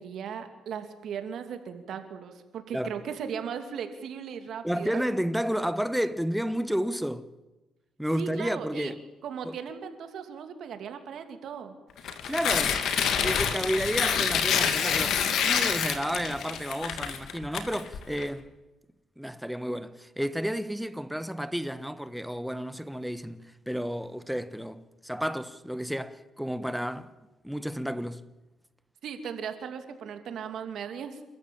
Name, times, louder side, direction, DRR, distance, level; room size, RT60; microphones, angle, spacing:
voice 1, 0.0-5.0 8.1-8.9 9.2-11.7 29.0-31.2, right 7 dB, 70° right, 2.7 m, -37 dB
voice 2, 4.6-7.3 8.0-9.0 9.4-9.6 12.1-12.8 13.1-18.4 19.2-27.1 27.4-28.2, equal, ahead, 1.2 m, -31 dB
Tearing, 12.0-18.2, left 7 dB, 75° left, 2.1 m, -27 dB
29.0 x 13.5 x 8.8 m
cardioid pair, 90°, 0 cm